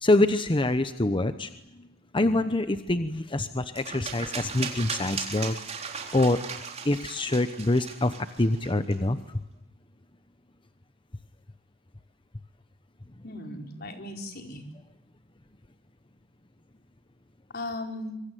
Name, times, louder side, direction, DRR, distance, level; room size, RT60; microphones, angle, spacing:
voice 1, 0.0-1.5 1.8-1.9 2.1-5.6 6.1-6.4 6.8-9.2, left 2 dB, 25° left, 10 dB, 1.0 m, -25 dB
sound 1, 3.8-8.9, right 6 dB, 35° right, 3.9 m, -37 dB
voice 2, 13.2-14.6 17.5-18.1, left 1 dB, 50° left, 3 dB, 4.6 m, -37 dB
25.5 x 24.0 x 9.3 m, 0.85 s
head